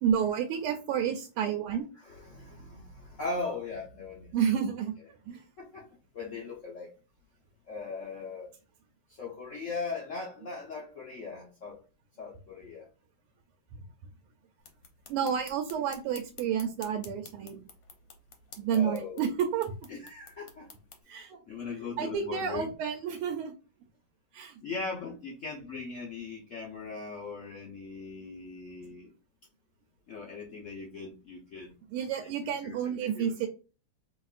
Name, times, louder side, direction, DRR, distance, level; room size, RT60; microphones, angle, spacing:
voice 1, 0.0-1.9 4.3-4.9 5.3-5.4 15.1-17.6 18.6-19.7 21.1-21.4 22.0-23.5 24.3-24.6 31.9-33.5, right 8 dB, 90° right, 3 dB, 1.5 m, -30 dB
voice 2, 2.0-4.3 5.6-5.9 6.1-6.9 7.7-8.5 9.1-11.8 12.2-12.9 18.7-19.3 19.9-20.7 21.5-22.7 24.6-29.1 30.1-31.7 32.2-32.3 32.6-32.7 33.0-33.3, left 4 dB, 80° left, -3 dB, 0.6 m, -39 dB
sound 1, 14.6-21.0, left 5 dB, 60° left, 1.2 m, -52 dB
5.0 x 3.0 x 2.4 m, 0.34 s
omnidirectional pair, 2.3 m